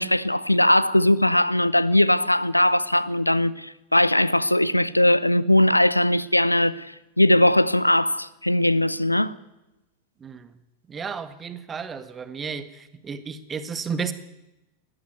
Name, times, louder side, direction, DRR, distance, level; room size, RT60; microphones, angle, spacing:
voice 1, 0.0-9.3, left 1 dB, 85° left, 0.7 m, -20 dB
voice 2, 10.9-12.7 13.0-14.1, right 6 dB, 20° right, 1.6 m, -32 dB
19.5 x 14.5 x 9.5 m
figure-of-eight pair, 90°, 0 cm